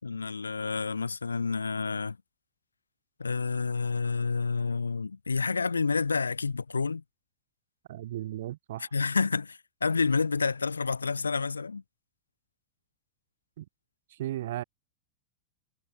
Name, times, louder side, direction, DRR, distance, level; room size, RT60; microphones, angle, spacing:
voice 1, 0.0-2.2 3.2-7.0 8.8-11.8, left 4 dB, 75° left, 5.0 m, -29 dB
voice 2, 7.9-8.9 13.6-13.7 14.1-14.6, right 14 dB, 55° right, 7.3 m, -35 dB
figure-of-eight pair, 90°, 0 cm